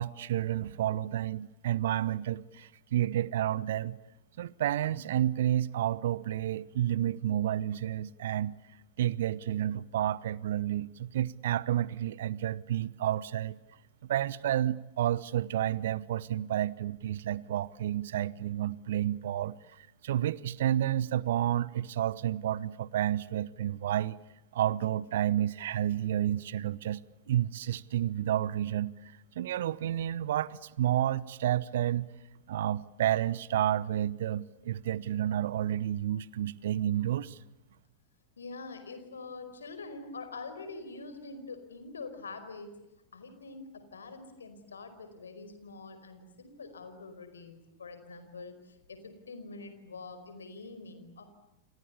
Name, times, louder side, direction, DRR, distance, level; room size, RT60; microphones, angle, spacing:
voice 1, 0.0-4.0 4.4-8.5 9.0-13.6 14.1-24.2 24.5-27.0 27.3-28.9 29.3-32.1 32.5-37.4, right 11 dB, 60° right, 0.9 m, -30 dB
voice 2, 38.4-42.7 43.1-51.2, left 3 dB, 70° left, 4.9 m, -45 dB
30.0 x 27.0 x 7.0 m
figure-of-eight pair, 90°, 0 cm